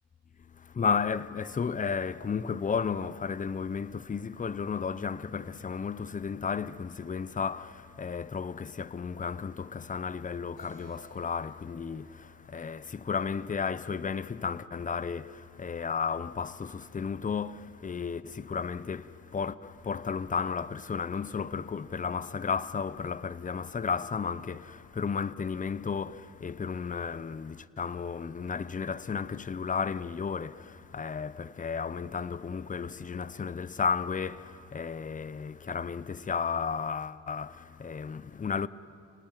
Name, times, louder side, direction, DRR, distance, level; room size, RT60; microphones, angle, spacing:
voice 1, 0.6-38.7, left 6 dB, 25° left, 0.7 m, -33 dB
Keyboard (musical), 10.6-14.0, right 2 dB, 90° left, 7.8 m, -59 dB
30.0 x 18.5 x 9.1 m
cardioid pair, 90°, 30 cm